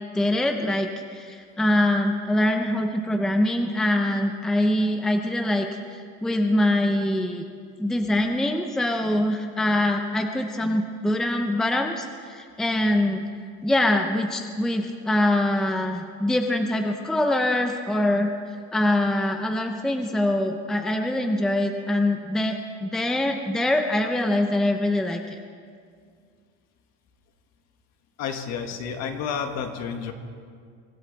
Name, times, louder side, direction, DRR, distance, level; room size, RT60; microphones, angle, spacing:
voice 1, 0.1-7.4 7.8-13.2 13.6-18.3 18.7-25.4, left 1 dB, ahead, 4 dB, 0.6 m, -24 dB
voice 2, 28.2-30.1, left 6 dB, 55° left, 5 dB, 1.7 m, -30 dB
24.0 x 14.5 x 4.0 m, 2.1 s
cardioid pair, 155°, 32 cm